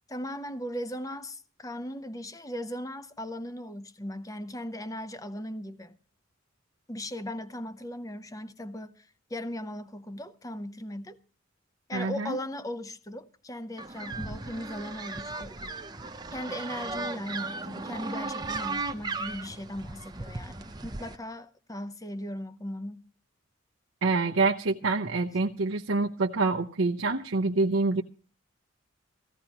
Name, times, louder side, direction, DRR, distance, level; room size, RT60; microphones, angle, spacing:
voice 1, 0.1-6.0 6.9-11.2 11.9-15.6 16.3-23.0, left 1 dB, 15° left, 0.7 m, -38 dB
voice 2, 11.9-12.4 24.0-28.0, right 3 dB, 80° right, 0.8 m, -26 dB
sound 1, 13.8-21.2, right 3 dB, 20° right, 0.6 m, -36 dB
17.0 x 15.0 x 2.9 m
head